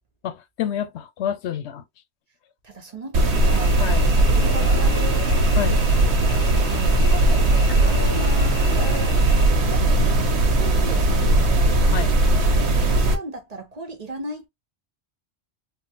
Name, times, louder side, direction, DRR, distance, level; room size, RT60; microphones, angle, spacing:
voice 1, 0.2-1.8 3.8-4.1 5.6-5.8 9.8-10.3 11.9-12.1, left 9 dB, 85° left, 0.9 m, -29 dB
voice 2, 2.6-5.4 6.6-11.8 12.9-14.5, right 2 dB, 45° right, 0.7 m, -37 dB
sound 1, 3.1-13.2, right 2 dB, 85° right, 1.1 m, -19 dB
Cricket / Buzz, 3.3-9.5, left 2 dB, 45° left, 1.8 m, -35 dB
3.5 x 2.0 x 2.7 m
omnidirectional pair, 1.1 m